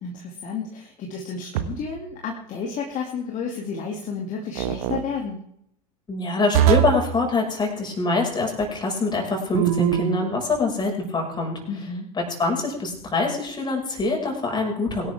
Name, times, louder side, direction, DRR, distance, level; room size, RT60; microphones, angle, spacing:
voice 1, 0.0-5.4 11.7-12.1, left 5 dB, 35° left, 0 dB, 2.5 m, -31 dB
sound 1, 1.5-2.0 4.6-5.0 6.5-7.1 9.5-10.3, right 12 dB, 60° right, 1.4 m, -22 dB
voice 2, 6.1-11.6 12.4-15.1, left 3 dB, 20° left, 1 dB, 5.7 m, -24 dB
23.0 x 11.5 x 3.6 m, 0.72 s
figure-of-eight pair, 80°, 21 cm